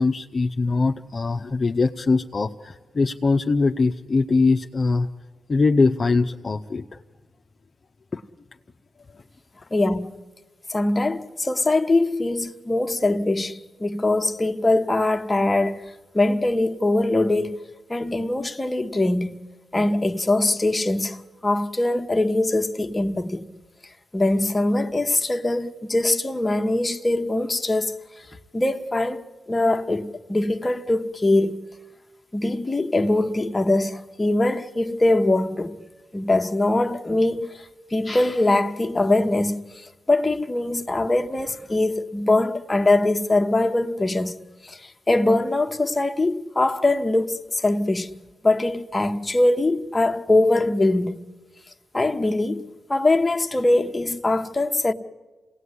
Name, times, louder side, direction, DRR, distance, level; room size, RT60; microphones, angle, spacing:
voice 1, 0.0-5.1 5.5-7.0 8.1-8.2 9.1-9.2, left 3 dB, 40° left, 0.7 m, -22 dB
voice 2, 9.7-10.2 10.7-15.8 16.1-17.6 17.9-19.4 19.7-23.4 24.1-27.9 28.5-29.2 29.5-31.6 32.3-35.8 36.1-37.5 37.9-39.6 40.1-48.1 48.4-51.2 51.9-54.9, left 2 dB, 20° left, 1.2 m, -22 dB
27.5 x 18.0 x 9.7 m
cardioid pair, 90°, 0 cm